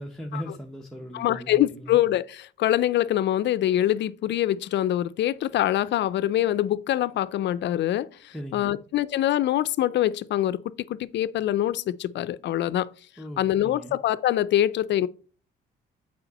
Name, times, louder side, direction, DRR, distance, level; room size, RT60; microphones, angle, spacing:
voice 1, 0.0-2.0 8.3-8.8 13.2-13.9, equal, ahead, 0.8 m, -38 dB
voice 2, 1.1-10.6 10.9-12.9 13.4-15.1, left 12 dB, 65° left, 0.4 m, -24 dB
7.0 x 4.8 x 4.0 m
cardioid pair, 90°, 20 cm